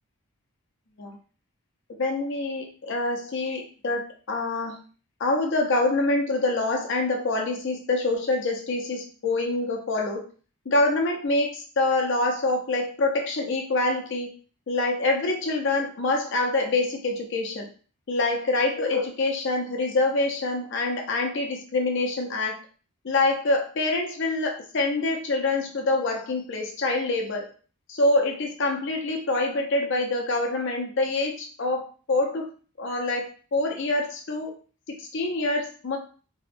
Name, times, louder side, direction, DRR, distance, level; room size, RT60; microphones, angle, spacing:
voice 1, 1.9-4.0 4.3-4.8 5.2-10.2 10.7-14.3 14.7-17.7 18.1-22.6 23.0-27.5 27.9-32.5 32.8-34.5 34.9-36.0, left 2 dB, 55° left, 2 dB, 0.5 m, -25 dB
2.7 x 2.2 x 2.5 m, 0.38 s
head